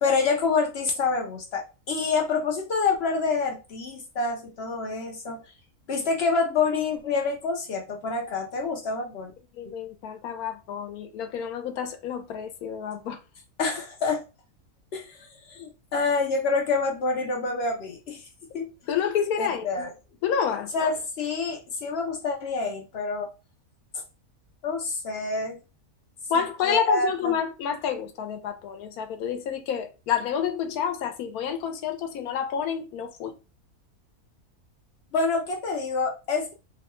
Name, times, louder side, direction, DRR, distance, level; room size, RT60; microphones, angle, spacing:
voice 1, 0.0-5.4 5.9-9.3 13.6-14.2 14.9-18.2 18.5-18.7 19.4-19.9 20.7-23.3 24.6-25.6 26.6-27.3 35.1-36.5, left 4 dB, 65° left, 0.6 m, -27 dB
voice 2, 9.5-13.2 18.9-19.9 20.2-20.7 26.3-33.3, left 7 dB, 80° left, 1.1 m, -29 dB
3.0 x 2.1 x 2.9 m
omnidirectional pair, 1.6 m